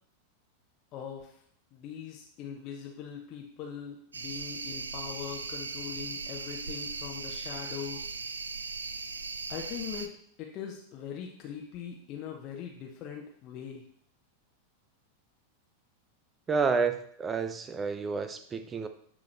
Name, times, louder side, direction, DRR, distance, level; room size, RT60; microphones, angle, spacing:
voice 1, 0.9-1.4 1.7-8.1 9.5-10.1 10.4-13.9, left 8 dB, 35° left, 0 dB, 0.9 m, -41 dB
sound 1, 4.1-10.1, right 4 dB, 75° right, 0.4 m, -38 dB
voice 2, 16.5-18.9, right 5 dB, 20° right, 9 dB, 0.6 m, -30 dB
10.5 x 3.7 x 3.3 m, 0.64 s
figure-of-eight pair, 90°, 0 cm